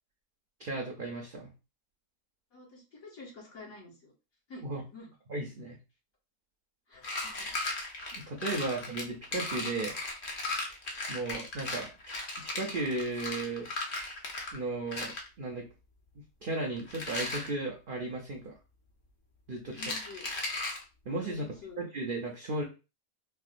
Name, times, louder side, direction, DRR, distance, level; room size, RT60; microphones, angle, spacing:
voice 1, 0.6-1.5 4.6-4.8 5.3-5.8 8.1-10.0 10.7-10.8 11.1-12.2 12.4-13.7 14.5-15.7 16.4-18.5 19.5-19.9 21.1-21.4 21.8-22.6, right 2 dB, 65° right, 0 dB, 0.5 m, -35 dB
voice 2, 2.5-4.1 4.5-4.7 4.9-5.1 6.9-7.5 19.7-20.3 21.2-21.8, left 3 dB, 65° left, -6 dB, 2.1 m, -48 dB
sound 1, 7.0-14.6 14.9-15.3 16.8-17.5 19.7-20.8, left 2 dB, 45° left, 0.8 m, -37 dB
4.4 x 2.1 x 2.5 m, 0.30 s
omnidirectional pair, 1.6 m